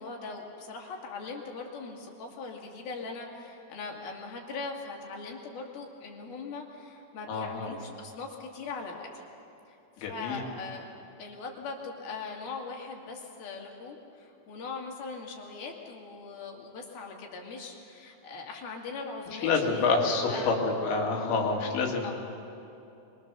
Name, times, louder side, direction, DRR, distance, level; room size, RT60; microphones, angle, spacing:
voice 1, 0.0-9.2 9.7-10.9 11.2-20.0 20.3-20.5 22.0-22.1, left 4 dB, 60° left, 0 dB, 4.0 m, -40 dB
voice 2, 7.3-7.7 10.0-10.4 19.4-22.1, left 4 dB, 85° left, 1 dB, 4.6 m, -27 dB
23.5 x 23.5 x 6.8 m, 2.8 s
omnidirectional pair, 5.1 m